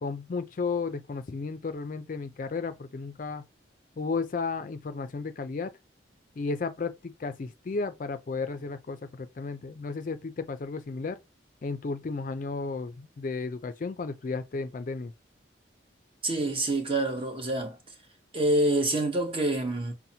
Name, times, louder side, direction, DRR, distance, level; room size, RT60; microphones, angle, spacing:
voice 1, 0.0-3.4 4.0-5.7 6.4-11.2 11.6-15.1, left 4 dB, 45° left, 0.3 m, -33 dB
voice 2, 16.2-17.8 18.3-19.9, right 1 dB, 30° right, 0.8 m, -26 dB
5.5 x 2.1 x 2.7 m
head